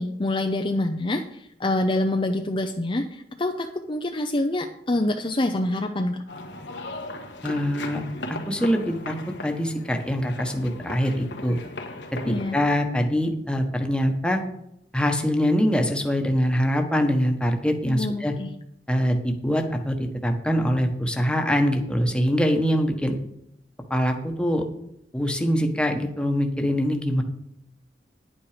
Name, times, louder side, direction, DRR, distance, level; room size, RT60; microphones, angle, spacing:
voice 1, 0.0-6.2 12.2-12.6 17.9-18.5, left 1 dB, 30° left, 4 dB, 0.6 m, -26 dB
sound 1, 6.3-12.7, left 2 dB, 85° left, 1.5 m, -38 dB
voice 2, 7.4-8.0 8.3-9.2 9.4-11.6 12.3-14.4 14.9-18.3 18.9-23.2 23.9-24.6 25.1-27.2, equal, 5° left, 3 dB, 1.2 m, -23 dB
10.5 x 8.8 x 5.0 m, 0.77 s
head